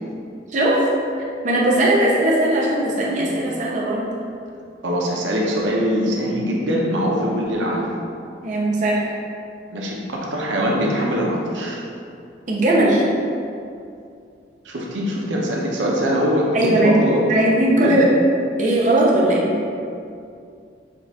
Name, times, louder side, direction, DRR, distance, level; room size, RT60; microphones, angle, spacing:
voice 1, 0.5-0.9 1.2-4.1 8.4-9.1 12.5-13.1 16.5-17.0 17.3-18.1 18.6-19.6, right 1 dB, 45° right, -4 dB, 0.6 m, -18 dB
voice 2, 4.8-7.9 9.7-11.8 14.6-17.3 17.8-18.0 19.2-19.3, equal, 90° right, -2 dB, 0.7 m, -22 dB
5.2 x 2.4 x 4.1 m, 2.4 s
head